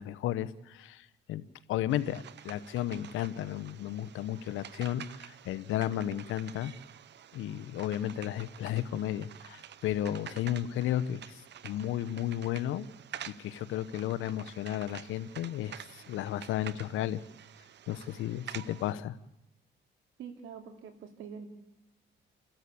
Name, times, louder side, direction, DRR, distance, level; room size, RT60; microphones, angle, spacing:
voice 1, 0.0-1.4 1.7-6.7 7.3-12.9 13.3-17.2 17.9-19.1, left 12 dB, 85° left, 15 dB, 1.0 m, -33 dB
sound 1, 1.9-18.9, right 10 dB, 60° right, 0.9 m, -49 dB
voice 2, 20.2-21.5, right 7 dB, 80° right, 6 dB, 3.1 m, -45 dB
28.5 x 13.5 x 8.5 m, 0.93 s
cardioid pair, 90°, 20 cm